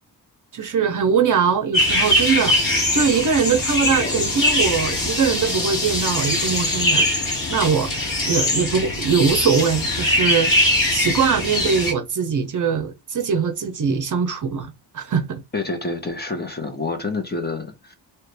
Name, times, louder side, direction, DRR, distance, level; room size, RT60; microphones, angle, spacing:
voice 1, 0.5-2.6 2.9-7.1 7.5-10.5 10.9-15.4, right 6 dB, 45° right, 0.6 m, -22 dB
sound 1, 1.7-11.9, left 1 dB, 50° left, 1.6 m, -21 dB
voice 2, 15.5-17.9, left 3 dB, 25° left, 0.9 m, -28 dB
2.9 x 2.5 x 3.2 m
cardioid pair, 105°, 43 cm